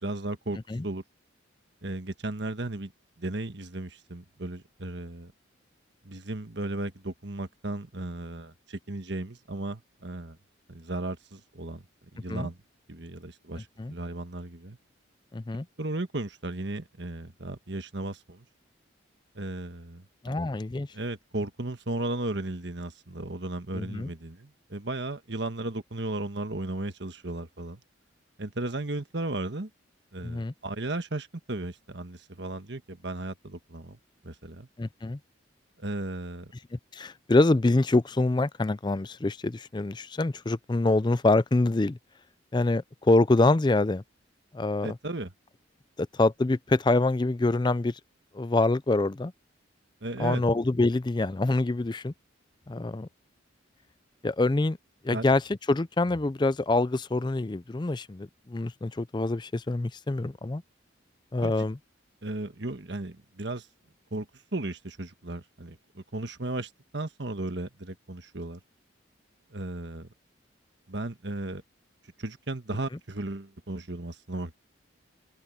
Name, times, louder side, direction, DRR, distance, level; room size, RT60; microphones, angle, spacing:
voice 1, 0.0-0.6 0.8-1.0 1.8-2.9 3.2-5.3 6.0-10.4 10.7-11.8 12.1-12.6 12.9-14.8 15.8-18.4 19.3-20.4 20.9-27.8 28.4-29.7 30.1-34.0 34.2-34.7 35.8-36.5 44.8-45.3 50.0-50.4 55.1-55.2 61.4-61.5 62.2-63.7 64.1-68.6 69.5-70.1 70.9-71.6 72.2-74.6, right 2 dB, 60° right, 1.5 m, -35 dB
voice 2, 15.3-15.7 20.2-20.9 23.7-24.1 30.2-30.5 34.8-35.2 36.7-42.0 42.5-44.0 44.5-45.0 46.0-48.0 48.3-49.3 50.2-52.1 52.7-53.1 54.2-54.8 55.0-60.6 61.3-61.8, left 2 dB, 20° left, 0.4 m, -25 dB
open air
head